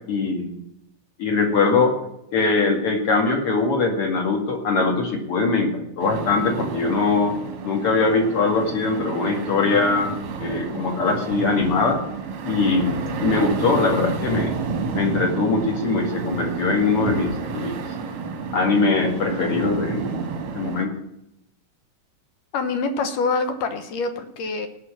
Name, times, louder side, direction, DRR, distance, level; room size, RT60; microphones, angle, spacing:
voice 1, 0.1-0.5 1.2-1.9 2.3-7.3 7.6-10.1 10.4-12.0 12.4-14.5 14.9-17.8 18.5-20.3 20.5-20.9, left 3 dB, 45° left, 3 dB, 2.6 m, -22 dB
sound 1, 6.0-20.9, right 4 dB, 55° right, 1.6 m, -30 dB
voice 2, 22.5-24.7, left 4 dB, 70° left, 8 dB, 2.6 m, -25 dB
18.5 x 6.3 x 6.1 m, 0.80 s
omnidirectional pair, 4.1 m